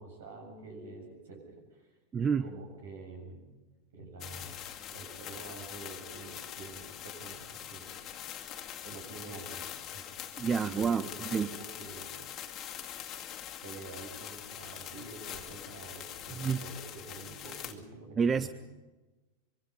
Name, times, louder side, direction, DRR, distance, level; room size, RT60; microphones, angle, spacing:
voice 1, 0.0-1.9 2.2-3.4 3.9-4.6 4.9-8.0 8.8-9.6 9.9-10.0 10.6-12.1 13.6-18.5, right 3 dB, 65° right, 3 dB, 7.4 m, -47 dB
voice 2, 2.1-2.5 10.4-11.5 16.4-16.6 18.2-18.5, right 6 dB, 20° right, 14 dB, 0.7 m, -28 dB
sound 1, 4.2-17.7, left 10 dB, 30° left, 2.2 m, -43 dB
24.5 x 23.5 x 5.5 m, 1.1 s
figure-of-eight pair, 90°, 0 cm